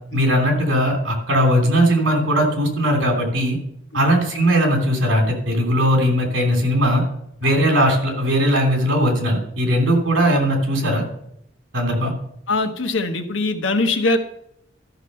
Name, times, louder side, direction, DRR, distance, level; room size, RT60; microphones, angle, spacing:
voice 1, 0.1-3.6 3.9-7.0 7.4-11.0 11.7-12.1, equal, 80° right, 2 dB, 3.2 m, -19 dB
voice 2, 12.5-14.2, left 2 dB, 85° left, 6 dB, 1.3 m, -22 dB
13.0 x 6.1 x 5.5 m, 0.75 s
head